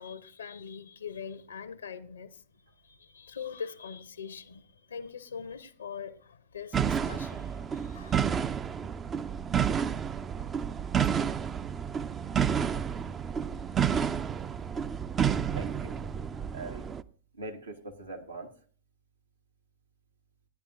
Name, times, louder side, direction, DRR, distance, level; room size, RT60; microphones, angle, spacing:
voice 1, 0.0-2.4 2.7-8.5, left 7 dB, 70° left, 0.7 m, -43 dB
sound 1, 6.7-17.0, right 8 dB, 20° right, 0.4 m, -30 dB
voice 2, 15.1-16.0 16.5-16.9 17.3-18.5, right 2 dB, 80° right, 1.6 m, -42 dB
16.0 x 10.0 x 2.6 m
figure-of-eight pair, 90°, 0 cm